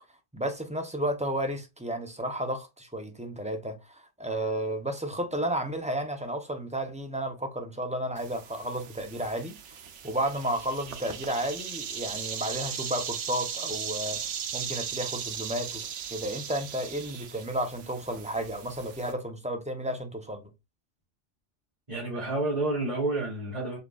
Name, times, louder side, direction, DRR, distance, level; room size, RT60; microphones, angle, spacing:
voice 1, 0.3-9.6 10.0-14.2 14.5-20.5, right 1 dB, 10° right, 0.4 m, -32 dB
sound 1, 8.2-19.1, right 7 dB, 80° right, 1.0 m, -37 dB
voice 2, 21.9-23.8, right 2 dB, 35° right, 2.1 m, -29 dB
5.3 x 3.7 x 2.3 m
omnidirectional pair, 1.2 m